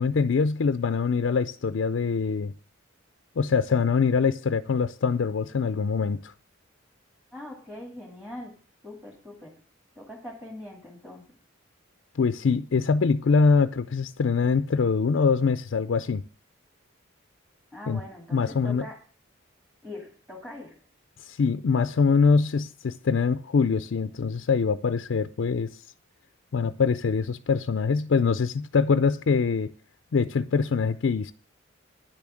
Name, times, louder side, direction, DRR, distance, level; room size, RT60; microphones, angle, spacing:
voice 1, 0.0-2.5 3.4-6.3 12.2-16.2 17.9-18.0 18.3-18.9 21.3-25.8 26.5-29.7 30.1-31.3, left 5 dB, 65° left, 0.4 m, -24 dB
voice 2, 7.3-8.5 8.8-9.6 10.0-11.2 17.7-19.0 19.8-20.8, left 1 dB, 5° right, 2.4 m, -42 dB
9.8 x 7.1 x 7.5 m
head